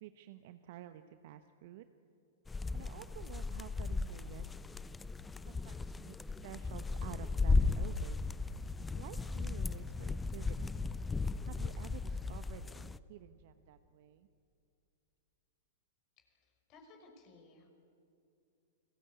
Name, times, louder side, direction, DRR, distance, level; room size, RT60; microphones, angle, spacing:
voice 1, 0.0-1.8 2.7-4.5 5.4-6.2 6.4-8.3 8.9-10.9 11.4-14.3, right 13 dB, 55° right, 10 dB, 1.1 m, -51 dB
sound 1, 2.5-13.0, left 3 dB, 10° left, 0.7 m, -36 dB
voice 2, 16.2-17.7, left 3 dB, 40° left, 4 dB, 6.0 m, -60 dB
29.5 x 21.0 x 8.5 m, 2.6 s
figure-of-eight pair, 100°, 0 cm